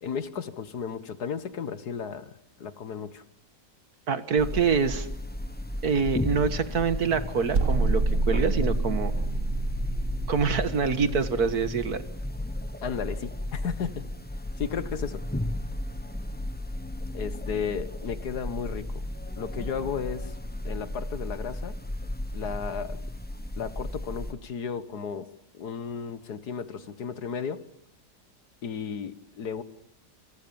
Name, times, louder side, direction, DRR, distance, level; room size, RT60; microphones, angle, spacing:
voice 1, 0.0-2.3 2.6-3.2 12.8-14.0 14.6-15.2 17.1-19.0 19.4-20.4 20.6-21.7 22.3-23.0 23.6-25.3 25.6-27.6 28.6-29.6, left 6 dB, 75° left, 13 dB, 2.0 m, -34 dB
voice 2, 4.1-5.1 5.8-9.1 10.3-12.0, right 5 dB, 70° right, 11 dB, 2.2 m, -25 dB
sound 1, 4.4-24.3, left 1 dB, 5° left, 0.9 m, -34 dB
sound 2, 7.5-10.6, right 3 dB, 50° right, 2.0 m, -26 dB
28.5 x 27.0 x 7.1 m, 0.71 s
omnidirectional pair, 1.7 m